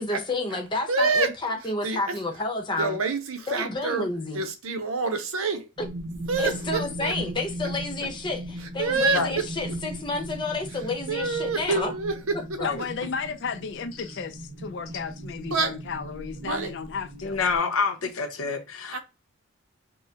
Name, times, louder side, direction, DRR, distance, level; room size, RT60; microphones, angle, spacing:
voice 1, 0.0-3.0 3.5-4.4 5.8-5.9 6.4-11.9, left 2 dB, 20° left, 0.8 m, -30 dB
voice 2, 0.9-1.3 1.8-2.2 2.8-4.1 4.3-5.7 6.3-7.1 8.8-9.2 11.1-12.6 15.5-15.7 16.4-16.7 18.9-19.0, right 3 dB, 75° right, 0.7 m, -27 dB
sound 1, 5.8-17.6, right 1 dB, 45° right, 0.9 m, -38 dB
voice 3, 12.6-17.4, left 5 dB, 55° left, 0.4 m, -34 dB
voice 4, 17.2-19.0, left 4 dB, 80° left, 0.8 m, -27 dB
5.4 x 2.1 x 2.8 m
head